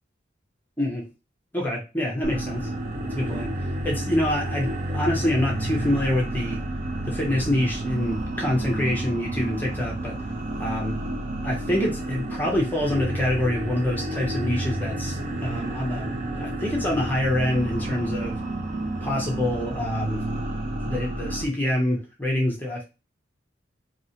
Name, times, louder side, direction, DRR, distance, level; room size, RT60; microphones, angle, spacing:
voice 1, 0.8-1.1 1.5-2.7 3.0-6.6 7.1-10.2 10.6-11.0 11.4-18.4 19.0-20.3 20.8-22.8, left 1 dB, 10° left, -2 dB, 0.7 m, -26 dB
sound 1, 2.2-21.4, right 1 dB, 35° right, 0.5 m, -30 dB
3.1 x 2.8 x 2.8 m, 0.29 s
head